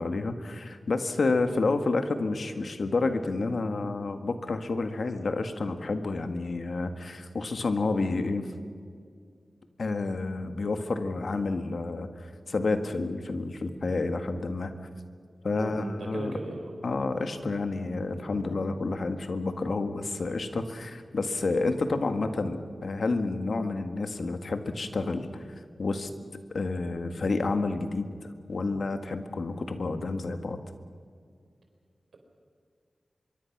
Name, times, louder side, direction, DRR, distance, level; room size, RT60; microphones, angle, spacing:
voice 1, 0.0-8.5 9.8-14.7 15.4-16.3 16.8-25.3 25.8-26.1 26.5-28.1 28.5-30.6, left 3 dB, 70° left, 7 dB, 1.8 m, -29 dB
voice 2, 15.5-16.7, right 2 dB, 90° right, 3 dB, 4.2 m, -36 dB
24.5 x 23.0 x 6.1 m, 2.2 s
cardioid pair, 50°, 0 cm